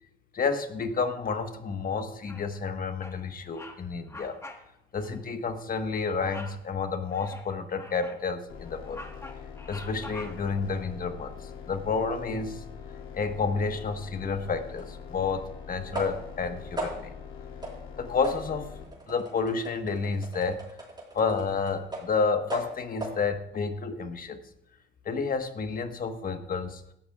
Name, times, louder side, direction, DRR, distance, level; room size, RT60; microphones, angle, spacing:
voice 1, 0.3-4.4 4.9-9.0 9.7-11.3 11.7-12.6 13.1-17.1 18.0-18.7 19.1-20.6 21.1-24.4 25.0-26.8, left 5 dB, 45° left, 6 dB, 1.4 m, -30 dB
Bird vocalization bird call bird song, 2.3-2.7 3.0-3.2 3.5-3.8 4.1-4.7 5.0-5.2 6.2-6.6 7.1-8.2 8.7-10.6, left 2 dB, 15° left, 1.5 m, -45 dB
sound 1, 8.5-18.8, left 6 dB, 90° left, 2.5 m, -43 dB
sound 2, 14.8-14.9 15.9-16.4 16.8-17.2 17.6-17.9 18.2-22.2 22.5-23.3, right 1 dB, 20° right, 4.4 m, -38 dB
17.5 x 13.5 x 2.4 m, 0.78 s
cardioid pair, 90°, 20 cm